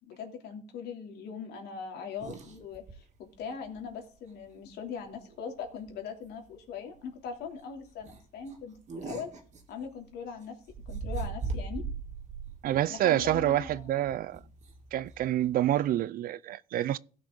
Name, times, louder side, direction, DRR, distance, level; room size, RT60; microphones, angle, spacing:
voice 1, 0.0-9.3 9.7-10.6 10.9-11.9 12.9-14.0, left 6 dB, 75° left, 3.0 m, -41 dB
sound 1, 2.2-2.9 3.3-3.4 3.8-3.9 5.1-5.4 5.7-5.9 6.4-6.5 6.8-6.9 7.3-7.5 8.0-10.2 10.7-16.0, right 4 dB, 45° right, 2.5 m, -40 dB
voice 2, 12.6-14.4 14.9-17.0, right 13 dB, 60° right, 0.5 m, -27 dB
16.5 x 6.2 x 3.8 m
cardioid pair, 110°, 17 cm